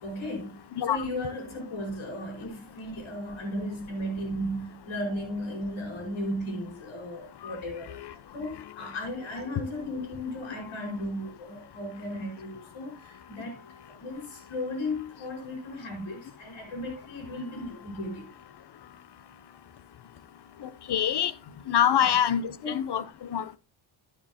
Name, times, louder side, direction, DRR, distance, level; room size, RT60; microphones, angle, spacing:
voice 1, 0.0-0.6 0.9-13.6 13.9-18.3 22.0-22.2 22.6-22.8, left 1 dB, 75° left, 5.2 m, -35 dB
voice 2, 8.4-9.0 10.6-10.9 20.6-21.3 21.7-23.6, left 9 dB, 55° left, 1.0 m, -27 dB
13.0 x 7.3 x 2.9 m
cardioid pair, 70°, 49 cm